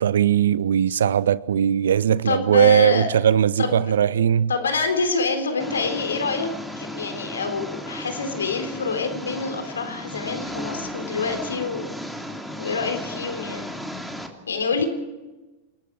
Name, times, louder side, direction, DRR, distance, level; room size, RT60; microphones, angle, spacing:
voice 1, 0.0-4.5, right 9 dB, 65° right, 0.7 m, -19 dB
voice 2, 2.3-3.1 3.6-3.8 4.5-11.9 12.6-13.7 14.5-14.9, left 4 dB, 70° left, 3.9 m, -26 dB
Engine, 5.6-14.3, equal, ahead, 2.8 m, -35 dB
29.0 x 19.0 x 4.8 m
figure-of-eight pair, 90°, 0 cm